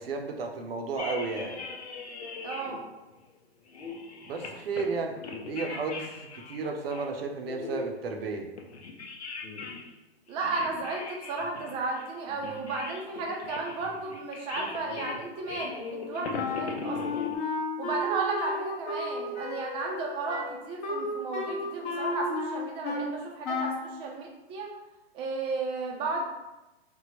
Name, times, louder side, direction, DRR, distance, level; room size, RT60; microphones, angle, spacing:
voice 1, 0.0-1.6 4.3-5.2 5.5-8.5, right 4 dB, 65° right, 3 dB, 0.6 m, -33 dB
sound 1, 1.0-2.8 3.2-3.3 3.7-4.9 5.1-7.1 7.5-9.9 10.3-17.4, left 4 dB, 85° left, 0.6 m, -40 dB
voice 2, 2.4-2.8 10.3-17.2 17.8-24.7 25.1-26.2, right 3 dB, 15° right, 0 dB, 0.4 m, -34 dB
Wind instrument woodwind instrument, 16.3-23.1 23.4-23.9, left 2 dB, 45° left, 0.7 m, -33 dB
3.5 x 2.1 x 2.9 m, 1.0 s
hypercardioid pair, 125°, 32 cm